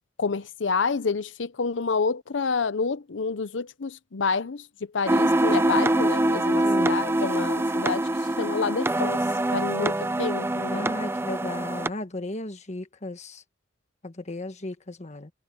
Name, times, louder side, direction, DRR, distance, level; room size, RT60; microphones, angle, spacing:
voice 1, 0.2-4.7 4.9-9.2 9.5-10.9, left 4 dB, 85° left, 0.7 m, -28 dB
sound 1, 5.1-11.9, right 1 dB, 15° right, 0.6 m, -24 dB
voice 2, 6.6-7.1 9.8-9.9 10.7-13.4 14.0-15.3, left 2 dB, 40° left, 1.4 m, -35 dB
head